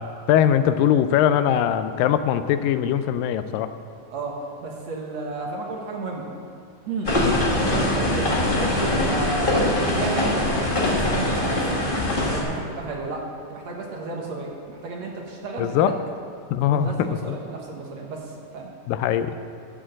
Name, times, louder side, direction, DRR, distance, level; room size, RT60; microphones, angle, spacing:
voice 1, 0.3-3.7 7.2-7.3 15.6-15.9 16.5-17.4 18.9-19.3, left 10 dB, 85° left, 11 dB, 2.3 m, -21 dB
voice 2, 4.1-6.3 6.9-7.2 8.0-13.2 13.5-15.9 16.7-18.7, right 3 dB, 60° right, -1 dB, 2.2 m, -33 dB
sound 1, 7.0-12.4, left 1 dB, 55° left, 0.6 m, -22 dB
13.5 x 6.3 x 7.7 m, 2.5 s
omnidirectional pair, 3.9 m